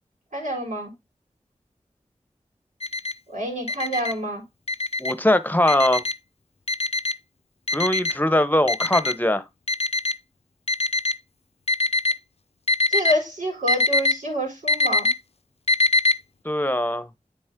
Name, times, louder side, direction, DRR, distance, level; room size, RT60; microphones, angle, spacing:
voice 1, 0.3-0.9 3.3-4.4 12.9-15.1, equal, 80° right, 3.7 m, -27 dB
Alarm, 2.8-3.1 3.7-4.1 4.7-5.1 5.7-6.1 6.7-7.1 7.7-8.1 8.7-9.1 9.7-10.1 10.7-11.1 11.7-12.1 12.7-13.1 13.7-14.1 14.7-15.1 15.7-16.1, left 3 dB, 50° left, 0.7 m, -22 dB
voice 2, 5.0-6.0 7.7-9.4 16.4-17.1, left 1 dB, 15° left, 1.0 m, -21 dB
9.6 x 4.2 x 3.7 m
wide cardioid pair, 45°, 13 cm